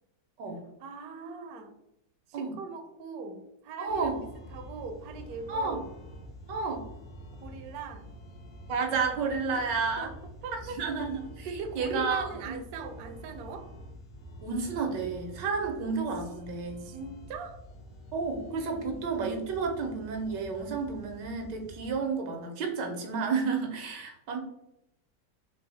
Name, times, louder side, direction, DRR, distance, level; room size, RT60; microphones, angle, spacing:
voice 1, 0.8-1.8 2.3-4.2 4.5-5.9 7.4-8.1 9.5-9.6 10.0-10.2 10.4-10.8 11.4-13.7 15.6-15.7 16.8-17.6, right 4 dB, 70° right, 6 dB, 1.0 m, -40 dB
voice 2, 3.8-4.2 5.5-5.8 6.5-6.8 8.7-10.1 10.8-11.5 11.7-12.5 14.4-16.9 18.1-24.4, right 4 dB, 90° right, 3 dB, 1.4 m, -31 dB
sound 1, 3.9-21.9, equal, 65° left, 1.2 m, -47 dB
4.6 x 2.0 x 4.0 m, 0.84 s
omnidirectional pair, 1.8 m